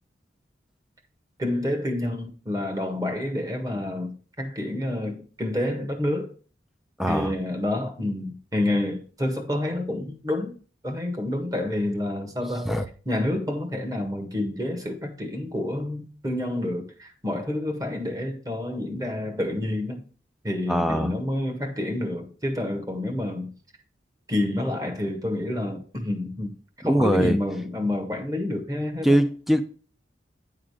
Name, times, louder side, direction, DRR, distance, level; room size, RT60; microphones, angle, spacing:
voice 1, 1.4-6.3 7.1-10.5 10.8-12.7 13.0-20.0 20.4-23.5 24.3-26.5 26.8-29.2, left 1 dB, 20° right, 1.6 m, -28 dB
voice 2, 7.0-7.3 12.6-12.9 20.7-21.1 26.8-27.4 29.0-29.6, equal, ahead, 0.6 m, -22 dB
9.7 x 3.8 x 6.5 m
head